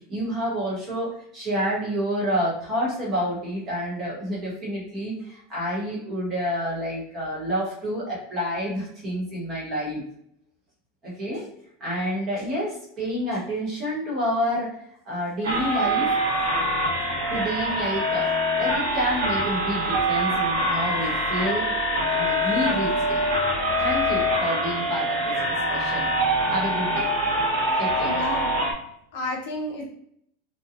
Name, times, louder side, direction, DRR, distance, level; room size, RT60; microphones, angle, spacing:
voice 1, 0.1-10.0 11.0-11.5 11.8-14.7 15.0-16.1 17.3-18.3 18.6-21.7 22.1-23.2 23.8-25.3 25.7-26.1 26.5-27.1 27.8-28.2, equal, 25° right, -6 dB, 1.1 m, -28 dB
sound 1, 15.4-28.7, equal, 65° right, 0.9 m, -24 dB
voice 2, 27.7-28.7 29.1-29.9, left 2 dB, 60° left, -1 dB, 0.7 m, -32 dB
2.8 x 2.2 x 2.4 m, 0.70 s
supercardioid pair, 175°, 0 cm